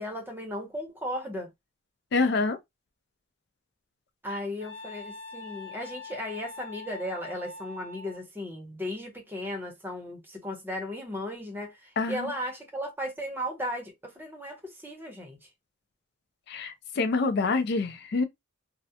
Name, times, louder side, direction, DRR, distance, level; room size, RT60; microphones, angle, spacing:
voice 1, 0.0-1.5 4.2-15.4, left 1 dB, 10° right, 0.7 m, -36 dB
voice 2, 2.1-2.6 12.0-12.3 16.5-18.2, left 3 dB, 55° left, 0.4 m, -26 dB
Wind instrument woodwind instrument, 4.6-8.2, left 3 dB, 75° left, 1.0 m, -43 dB
2.3 x 2.0 x 2.7 m
head